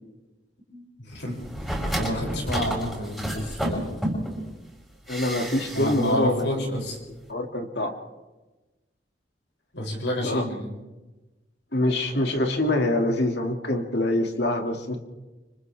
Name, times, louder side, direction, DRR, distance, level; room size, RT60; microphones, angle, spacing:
voice 1, 0.7-1.4 1.9-4.0 5.7-7.0 9.7-10.8, equal, 85° left, 0 dB, 7.0 m, -29 dB
sound 1, 1.4-4.4 5.1-6.1 6.4-6.5, equal, ahead, 5.4 m, -30 dB
voice 2, 5.1-6.5 7.3-7.9 10.2-10.4 11.7-15.0, left 1 dB, 65° left, 3 dB, 2.4 m, -25 dB
29.5 x 26.0 x 3.5 m, 1.1 s
head